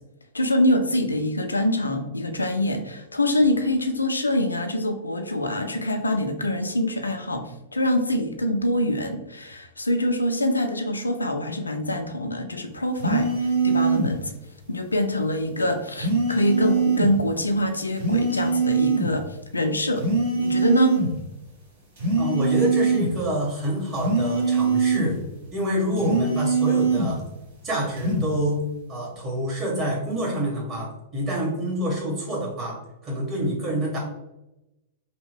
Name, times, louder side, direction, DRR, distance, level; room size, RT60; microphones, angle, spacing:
voice 1, 0.3-14.3 14.7-20.1 20.4-21.0, left 1 dB, 80° left, 6 dB, 0.3 m, -24 dB
sound 1, 13.0-14.1 16.0-17.1 18.0-19.1 20.0-21.1 22.0-23.1 24.0-25.1 26.0-27.1 28.0-28.3, right 4 dB, 60° right, 1.2 m, -22 dB
voice 2, 22.2-25.2 25.5-27.2 27.6-32.8 33.0-34.0, equal, 30° right, -4 dB, 1.4 m, -27 dB
2.8 x 2.2 x 3.3 m, 0.94 s
figure-of-eight pair, 100°, 0 cm